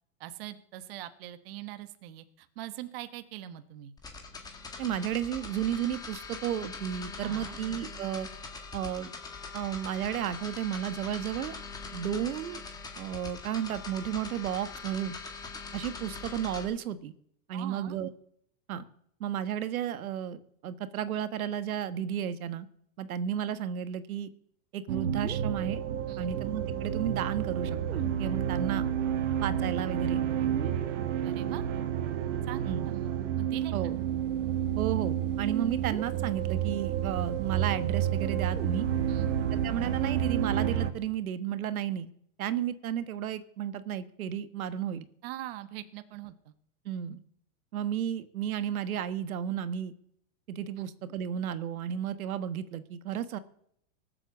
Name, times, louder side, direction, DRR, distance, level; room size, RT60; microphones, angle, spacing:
voice 1, 0.2-3.9 7.2-7.6 17.5-18.0 26.1-26.2 31.2-31.6 32.5-33.9 39.1-39.4 45.2-46.5 50.8-50.9, right 13 dB, 45° right, 11 dB, 1.2 m, -42 dB
sound 1, 4.0-16.6, left 4 dB, 10° left, 1.7 m, -42 dB
voice 2, 4.8-8.3 8.7-9.1 9.5-11.6 11.9-12.6 13.0-15.2 15.7-17.1 17.5-18.1 18.7-18.8 19.2-22.7 23.0-24.3 24.7-25.8 26.2-28.9 29.4-30.2 32.6-32.9 33.7-34.0 34.8-38.8 39.6-42.1 42.4-45.1 46.8-47.2 47.7-49.9 50.5-53.4, right 9 dB, 85° right, 13 dB, 1.4 m, -33 dB
sound 2, 24.9-40.9, right 9 dB, 60° right, 1.8 m, -30 dB
19.0 x 7.8 x 7.2 m, 0.70 s
supercardioid pair, 165°, 41 cm